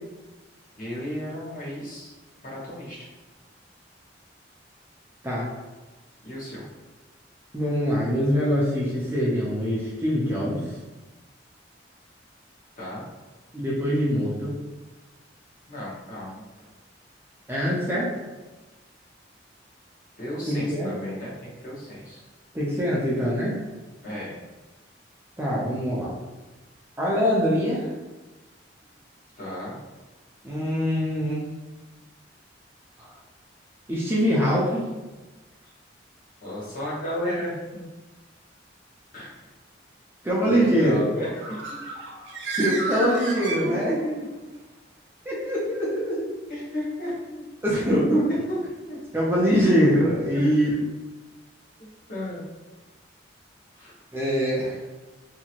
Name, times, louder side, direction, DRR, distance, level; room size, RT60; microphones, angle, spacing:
voice 1, 0.7-2.1 2.4-3.1 6.2-6.6 12.8-13.0 15.7-16.4 20.2-22.2 24.0-24.4 29.4-29.8 36.4-37.8 39.1-39.5 40.4-41.9 43.6-44.3 46.5-47.4 47.9-48.6 48.8-49.0 50.3-50.8 51.8-52.4 53.7-53.9, left 1 dB, 45° left, -7 dB, 1.0 m, -34 dB
voice 2, 7.5-10.6 13.5-14.5 17.5-18.1 20.5-20.9 22.5-23.6 25.4-26.1 27.0-27.9 30.4-31.4 33.0-33.1 33.9-34.9 40.2-40.9 42.6-44.1 45.3-46.3 47.6-48.2 49.1-50.7 54.1-54.8, equal, 10° right, -6 dB, 0.5 m, -23 dB
Bird, 41.2-44.2, right 3 dB, 90° right, 0.6 m, -32 dB
2.8 x 2.5 x 2.8 m, 1.2 s
head